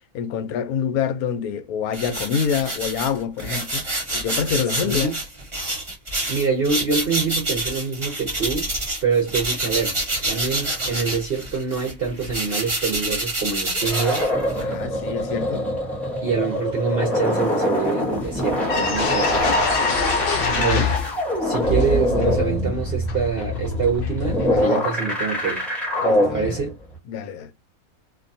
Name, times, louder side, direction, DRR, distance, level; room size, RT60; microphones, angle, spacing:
voice 1, 0.1-5.2 14.6-15.7 20.4-20.9 24.5-24.9 26.0-26.6 27.1-27.5, left 7 dB, 85° left, 1.1 m, -27 dB
sound 1, 1.9-9.0 9.3-14.7, right 1 dB, 25° right, 0.9 m, -27 dB
voice 2, 4.8-5.2 6.3-8.7 9.0-10.0 10.3-14.3 16.2-19.3 20.6-20.9 21.4-25.6 26.2-26.8, right 5 dB, 55° right, 0.7 m, -25 dB
sound 2, 12.3-13.2 13.7-26.9, left 1 dB, ahead, 0.6 m, -24 dB
sound 3, 18.2-18.3 18.6-21.3 21.6-24.6, left 3 dB, 60° left, 0.6 m, -24 dB
2.6 x 2.2 x 2.6 m
omnidirectional pair, 1.5 m